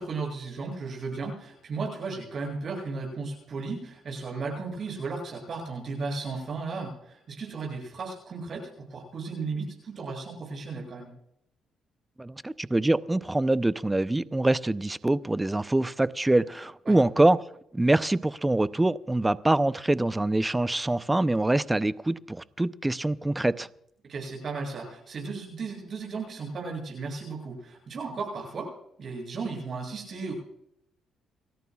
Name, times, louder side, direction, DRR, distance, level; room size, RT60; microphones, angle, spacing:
voice 1, 0.0-11.1 16.9-17.0 24.1-28.7 29.0-30.3, right 4 dB, 50° right, 0 dB, 7.8 m, -35 dB
voice 2, 12.2-17.4 17.7-23.7, right 2 dB, 15° right, 14 dB, 0.6 m, -24 dB
29.5 x 13.5 x 2.4 m, 0.74 s
cardioid pair, 90°, 0 cm